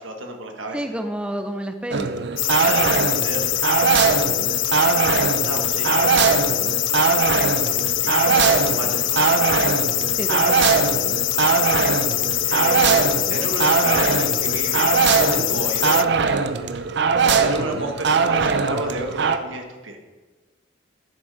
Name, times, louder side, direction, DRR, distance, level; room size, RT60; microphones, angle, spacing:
voice 1, 0.0-0.8 2.6-3.4 5.4-6.9 7.6-7.8 8.0-9.6 12.5-16.1 17.2-20.0, right 1 dB, 90° right, 3 dB, 1.5 m, -32 dB
voice 2, 0.7-2.1 10.2-10.6, right 1 dB, 5° right, 6 dB, 0.5 m, -29 dB
sound 1, 1.9-19.4, right 5 dB, 60° right, 0.6 m, -21 dB
sound 2, 2.4-16.0, left 19 dB, 70° left, 0.3 m, -23 dB
11.0 x 6.7 x 4.9 m, 1.3 s
head